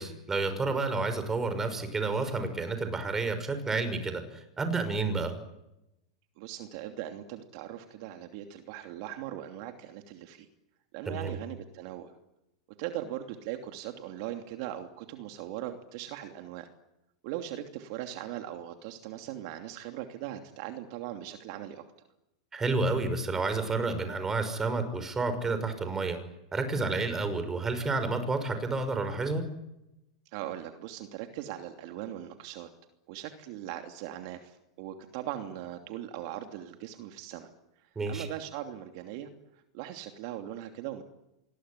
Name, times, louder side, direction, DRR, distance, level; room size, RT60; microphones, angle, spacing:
voice 1, 0.0-5.4 11.1-11.3 22.5-26.2 26.5-29.4 38.0-38.3, right 3 dB, 15° right, 10 dB, 5.8 m, -30 dB
voice 2, 6.4-10.5 10.9-12.1 12.8-16.7 17.2-21.8 30.3-32.7 33.1-37.5 37.8-41.0, right 12 dB, 55° right, 5 dB, 2.9 m, -40 dB
26.5 x 21.5 x 10.0 m, 0.89 s
supercardioid pair, 135°, 3 cm